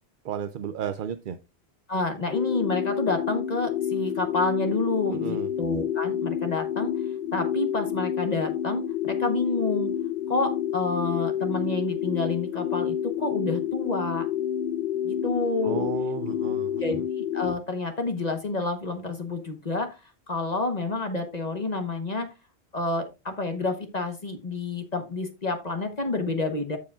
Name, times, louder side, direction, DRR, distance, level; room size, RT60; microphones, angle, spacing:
voice 1, 0.2-1.4 5.1-5.5 15.6-16.8, right 8 dB, 60° right, 10 dB, 0.6 m, -33 dB
voice 2, 1.9-6.9 7.3-9.9 10.3-14.3 15.0-15.9 16.8-20.0 20.3-22.3 22.7-26.8, left 3 dB, 40° left, 5 dB, 1.2 m, -29 dB
sound 1, 2.3-17.6, left 9 dB, 65° left, 0.8 m, -29 dB
14.0 x 4.9 x 2.4 m, 0.27 s
omnidirectional pair, 1.1 m